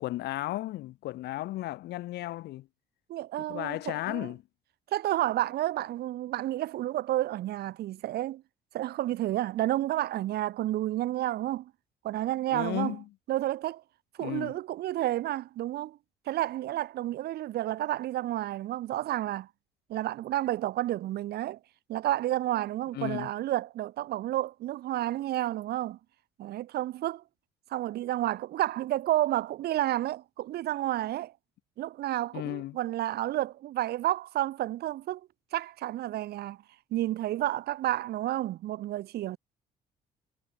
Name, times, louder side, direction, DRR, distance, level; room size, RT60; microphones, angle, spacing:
voice 1, 0.0-2.7 3.4-4.4 12.5-13.1 14.2-14.6 22.9-23.3 32.3-32.8, left 16 dB, 80° left, 5.6 m, -34 dB
voice 2, 3.1-3.8 4.1-4.3 4.9-8.4 8.7-11.7 12.0-13.0 13.3-13.8 14.2-16.0 16.3-19.5 19.9-21.6 21.9-26.0 26.4-27.2 27.7-31.3 31.8-35.2 35.5-36.6 36.9-39.4, right 14 dB, 70° right, 2.3 m, -30 dB
cardioid pair, 110°, 17 cm